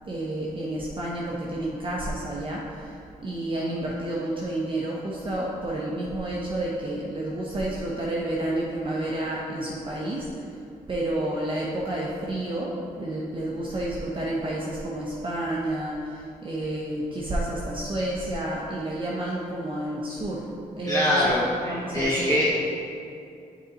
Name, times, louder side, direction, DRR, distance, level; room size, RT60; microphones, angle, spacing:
voice 1, 0.0-10.3 10.9-20.5 20.8-22.4, right 1 dB, 35° right, -5 dB, 0.9 m, -30 dB
voice 2, 20.9-22.5, left 1 dB, 20° left, -7 dB, 1.0 m, -23 dB
6.5 x 4.1 x 4.1 m, 2.5 s
cardioid pair, 60°, 16 cm